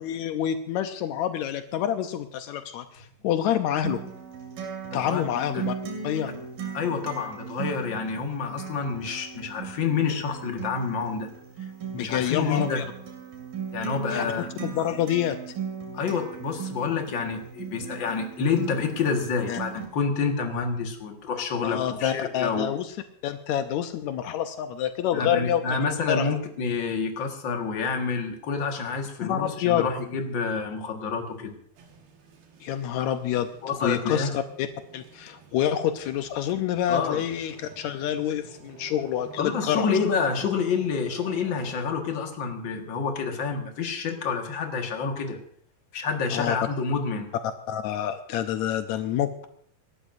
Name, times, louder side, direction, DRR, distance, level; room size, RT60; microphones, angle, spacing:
voice 1, 0.0-4.0 4.9-5.7 6.0-6.3 11.9-12.8 14.1-14.3 14.6-15.4 19.5-19.6 21.6-22.9 23.2-25.8 26.1-26.3 29.2-29.8 32.6-33.5 33.8-34.7 34.9-39.9 46.3-46.6 47.7-49.4, left 10 dB, 90° left, 7 dB, 1.6 m, -27 dB
Acoustic guitar, 3.8-19.9, right 6 dB, 75° right, 4.4 m, -38 dB
voice 2, 4.9-5.2 5.5-5.6 6.7-11.3 11.9-12.8 13.7-14.5 15.9-22.7 25.1-31.5 33.6-34.3 36.9-37.2 39.4-45.4 45.9-47.3, left 5 dB, 45° left, 3 dB, 1.7 m, -28 dB
sound 1, 31.8-41.8, right 4 dB, 90° right, 3.6 m, -48 dB
27.0 x 12.5 x 2.6 m, 0.64 s
omnidirectional pair, 4.2 m